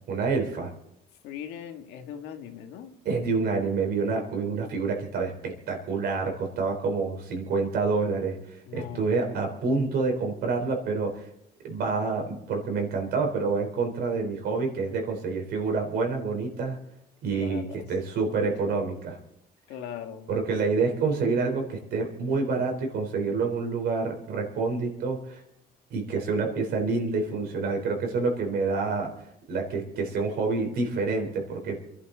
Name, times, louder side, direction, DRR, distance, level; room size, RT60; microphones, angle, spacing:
voice 1, 0.1-0.7 3.0-8.4 8.7-11.2 11.6-16.8 17.2-19.2 20.3-25.4 25.9-29.1 29.5-32.0, right 4 dB, 70° right, 2 dB, 4.0 m, -27 dB
voice 2, 1.2-2.9 8.7-9.2 17.3-17.9 18.7-18.8 19.7-20.3, left 9 dB, 90° left, 5 dB, 1.7 m, -40 dB
27.5 x 11.5 x 4.0 m, 0.81 s
cardioid pair, 110°, 17 cm